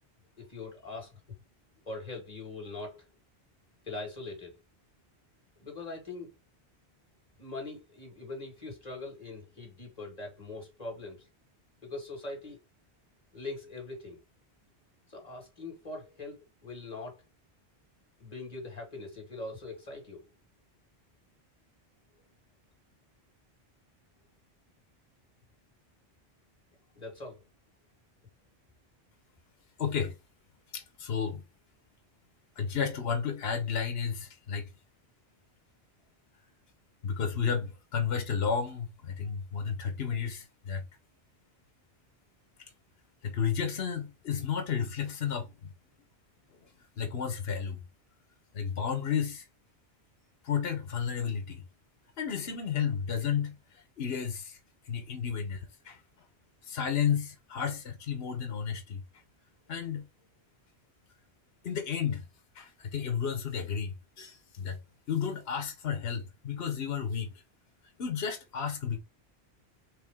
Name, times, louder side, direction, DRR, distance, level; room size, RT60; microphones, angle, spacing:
voice 1, 0.4-1.1 1.8-3.0 3.9-4.5 5.6-6.3 7.4-11.3 11.8-12.6 13.3-14.2 15.1-17.2 18.2-20.2 26.9-27.4, left 3 dB, 35° left, 2.3 m, -42 dB
voice 2, 29.8-30.1 30.7-31.4 32.6-34.7 37.0-40.8 43.2-45.7 47.0-47.8 48.5-49.4 50.4-51.6 52.2-53.6 54.0-54.6 54.9-56.0 56.7-59.0 59.7-60.0 61.6-62.2 62.6-64.8 65.1-67.3 68.0-69.0, left 7 dB, 70° left, 1.2 m, -32 dB
4.8 x 3.1 x 3.5 m
omnidirectional pair, 1.1 m